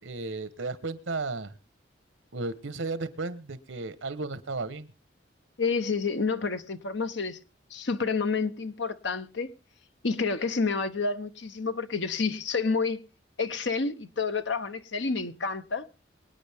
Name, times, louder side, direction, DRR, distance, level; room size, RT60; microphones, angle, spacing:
voice 1, 0.0-1.5 2.3-4.9, right 3 dB, 85° right, 1.2 m, -34 dB
voice 2, 5.6-7.4 7.7-9.5 10.0-13.0 13.4-15.9, left 4 dB, 70° left, 0.9 m, -29 dB
25.0 x 9.1 x 3.6 m
head